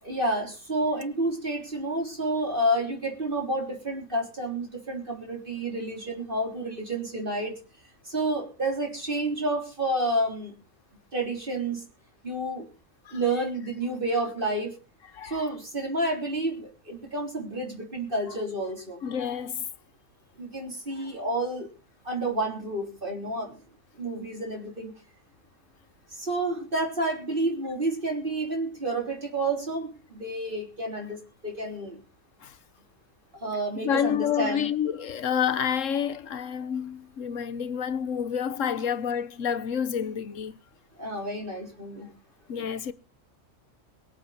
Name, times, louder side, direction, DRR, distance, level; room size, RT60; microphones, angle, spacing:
voice 1, 0.0-7.6 8.1-10.5 11.1-11.8 12.2-12.7 13.1-14.7 15.2-19.0 20.4-21.7 22.1-23.6 24.0-24.9 26.1-32.0 33.4-34.7 41.0-42.1, right 1 dB, 40° right, 3.7 m, -30 dB
voice 2, 15.1-15.4 19.0-19.7 21.0-21.1 32.4-32.6 33.8-40.6 42.5-42.9, left 8 dB, 70° left, 1.3 m, -29 dB
23.5 x 8.0 x 4.1 m
omnidirectional pair, 1.4 m